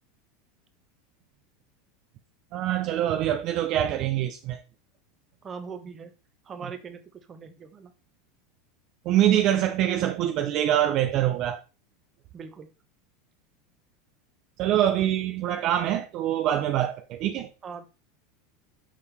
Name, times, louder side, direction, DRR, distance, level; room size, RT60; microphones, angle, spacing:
voice 1, 2.5-4.6 9.1-11.6 14.6-17.5, right 11 dB, 40° right, 0.5 m, -24 dB
voice 2, 5.4-6.1 6.5-7.9 12.3-12.7 17.6-17.8, right 5 dB, 20° right, 0.9 m, -41 dB
6.4 x 5.5 x 3.3 m
supercardioid pair, 155°, 0 cm